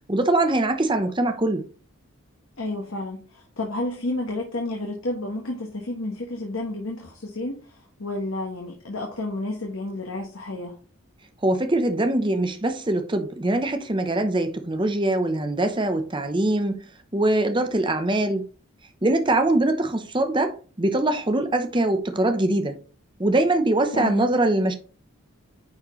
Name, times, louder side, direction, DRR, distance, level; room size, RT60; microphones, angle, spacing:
voice 1, 0.1-1.6 11.4-16.9 17.1-18.4 19.0-22.8 23.2-24.7, right 2 dB, 20° right, 0.8 m, -23 dB
voice 2, 2.6-10.8 23.9-24.2, left 2 dB, 65° left, 1.2 m, -31 dB
9.7 x 4.3 x 3.1 m
head